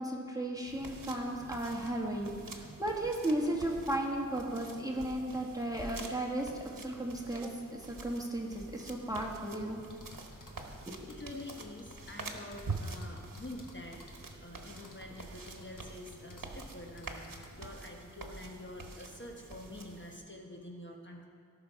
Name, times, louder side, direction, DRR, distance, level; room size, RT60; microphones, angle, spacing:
voice 1, 0.0-9.8 10.9-11.1, right 1 dB, 10° right, -1 dB, 1.5 m, -35 dB
sound 1, 0.7-20.2, right 3 dB, 80° right, 1.0 m, -46 dB
sound 2, 9.0-17.5, left 2 dB, 75° left, 1.3 m, -54 dB
voice 2, 11.1-14.0 14.3-21.3, left 1 dB, 35° left, 0 dB, 1.1 m, -47 dB
16.5 x 6.0 x 4.6 m, 2.2 s
wide cardioid pair, 50°, 32 cm